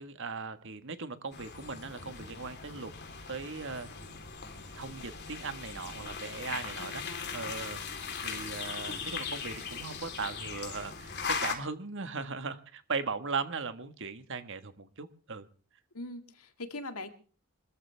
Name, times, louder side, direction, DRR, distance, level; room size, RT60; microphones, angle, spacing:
voice 1, 0.0-2.9 3.3-3.9 4.7-7.8 8.2-15.5, right 4 dB, 60° right, 10 dB, 1.5 m, -38 dB
sound 1, 1.3-11.5, left 5 dB, 50° left, 3.6 m, -39 dB
voice 2, 6.8-7.4 15.9-17.1, left 2 dB, 80° left, 7 dB, 2.1 m, -42 dB
25.0 x 14.0 x 3.4 m, 0.40 s
head